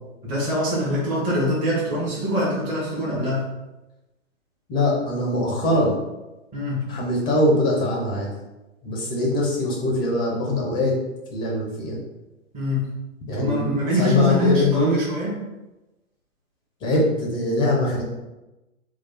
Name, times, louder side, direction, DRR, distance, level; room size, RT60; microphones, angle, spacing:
voice 1, 0.2-3.4 6.5-6.9 12.5-12.9 13.3-15.3, left 1 dB, 20° right, -7 dB, 1.4 m, -24 dB
voice 2, 4.7-6.0 6.9-8.3 8.8-10.9 11.3-12.0 13.3-14.9 16.8-18.0, left 1 dB, 10° left, -3 dB, 0.7 m, -22 dB
3.3 x 2.4 x 4.2 m, 1.0 s
figure-of-eight pair, 120°, 39 cm